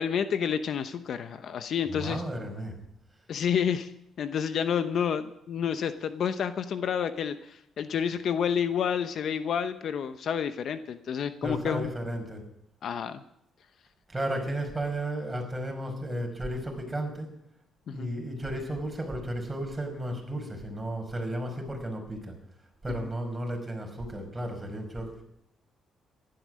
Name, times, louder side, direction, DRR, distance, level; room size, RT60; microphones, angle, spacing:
voice 1, 0.0-2.2 3.3-3.9 4.2-11.9 12.8-13.2 17.9-18.1 23.0-23.1, left 7 dB, 65° left, 11 dB, 0.8 m, -29 dB
voice 2, 1.9-2.8 11.4-12.4 14.1-17.3 17.9-22.3 22.8-25.2, right 1 dB, 15° right, 2 dB, 5.3 m, -34 dB
15.0 x 12.0 x 6.4 m, 0.78 s
cardioid pair, 90°, 0 cm